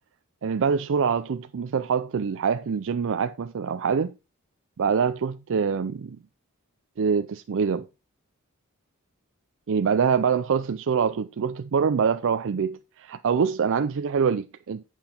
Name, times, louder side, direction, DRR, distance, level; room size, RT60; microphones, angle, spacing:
voice 1, 0.4-4.1 4.8-6.2 7.0-7.9 9.7-14.9, right 6 dB, 60° right, 0.4 m, -25 dB
8.9 x 5.7 x 4.3 m
head